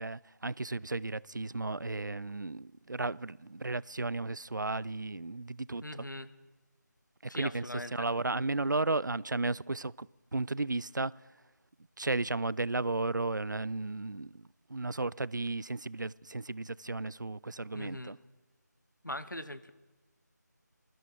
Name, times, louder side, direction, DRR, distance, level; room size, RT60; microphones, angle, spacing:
voice 1, 0.0-6.1 7.2-7.7 7.9-10.1 10.3-11.1 12.0-18.2, right 3 dB, 85° right, 0.4 m, -34 dB
voice 2, 5.8-6.3 7.3-8.1 17.7-18.1 19.0-19.7, left 1 dB, 85° left, 1.0 m, -40 dB
21.0 x 13.5 x 4.6 m
figure-of-eight pair, 165°, 10 cm